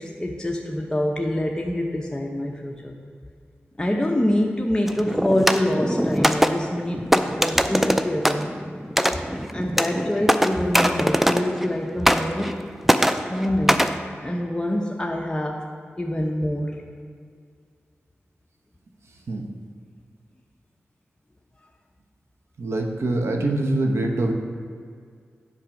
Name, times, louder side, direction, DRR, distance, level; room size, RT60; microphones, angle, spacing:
voice 1, 0.0-3.0 3.8-8.5 9.1-9.2 9.5-12.6 13.3-13.9 14.2-15.7 16.0-16.8, left 1 dB, 15° left, 0 dB, 0.8 m, -25 dB
sound 1, 4.9-11.7 12.0-12.6 12.8-14.0, equal, 5° right, 0.5 m, -22 dB
voice 2, 22.6-24.3, right 2 dB, 70° right, 3 dB, 1.0 m, -24 dB
7.5 x 5.9 x 5.2 m, 2.2 s
cardioid pair, 45°, 5 cm